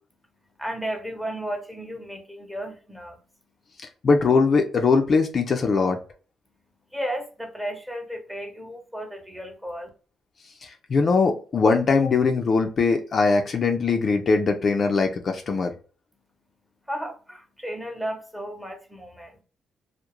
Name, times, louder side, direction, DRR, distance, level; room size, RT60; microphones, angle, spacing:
voice 1, 0.6-3.2 6.9-9.9 16.9-19.3, equal, 5° right, 0.7 m, -34 dB
voice 2, 4.0-6.0 10.6-15.7, left 4 dB, 45° left, 0.4 m, -21 dB
2.3 x 2.0 x 2.9 m
cardioid pair, 90°, 0 cm